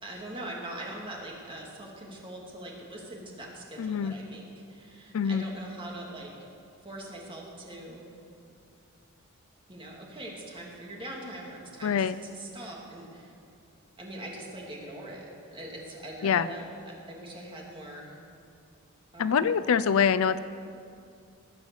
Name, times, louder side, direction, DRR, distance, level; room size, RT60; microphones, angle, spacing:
voice 1, 0.0-6.3 6.8-8.1 9.7-13.3 14.0-15.3 15.5-18.1 19.1-19.5, right 1 dB, 25° right, -2 dB, 2.5 m, -42 dB
voice 2, 3.8-4.1 5.1-5.4 11.8-12.2 16.2-16.5 19.2-20.4, left 7 dB, 65° left, 15 dB, 0.4 m, -24 dB
19.5 x 8.1 x 7.1 m, 2.5 s
head